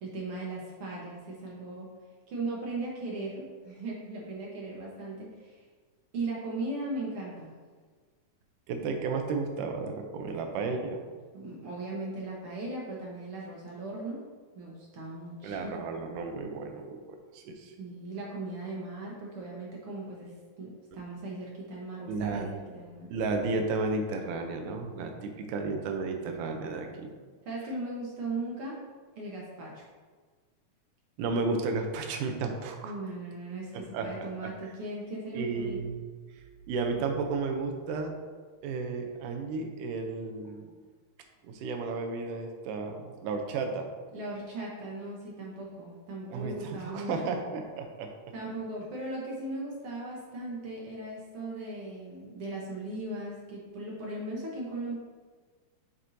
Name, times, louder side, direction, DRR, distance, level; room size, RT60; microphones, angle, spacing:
voice 1, 0.0-1.9 2.3-5.6 6.1-7.6 11.3-14.2 14.5-16.0 17.8-20.3 20.6-22.5 22.7-23.1 27.4-28.8 29.1-29.9 32.8-35.8 44.1-47.1 48.3-54.9, right 2 dB, 60° right, -3 dB, 1.5 m, -38 dB
voice 2, 8.7-11.0 15.4-17.7 22.1-22.5 23.1-27.1 31.2-32.9 33.7-34.1 34.4-34.5 35.3-36.0 36.7-38.1 38.6-40.7 41.4-43.9 46.3-48.1, right 4 dB, 85° right, 4 dB, 2.3 m, -33 dB
9.6 x 4.4 x 2.7 m, 1.5 s
omnidirectional pair, 3.6 m